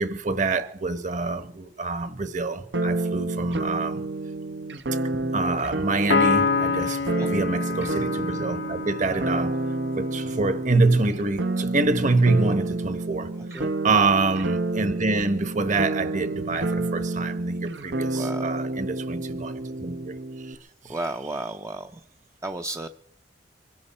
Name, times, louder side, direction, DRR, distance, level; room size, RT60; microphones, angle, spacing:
voice 1, 0.0-4.0 5.1-9.6 10.0-13.3 13.6-20.1 20.5-20.6 20.8-21.0, right 3 dB, 45° right, 1.2 m, -26 dB
sound 1, 2.7-20.5, right 2 dB, 85° right, 1.1 m, -29 dB
Piano, 6.1-9.7, left 4 dB, 75° left, 0.7 m, -26 dB
voice 2, 18.1-18.5 20.9-22.0 22.4-22.9, right 2 dB, 20° right, 0.5 m, -33 dB
24.5 x 12.0 x 4.3 m
head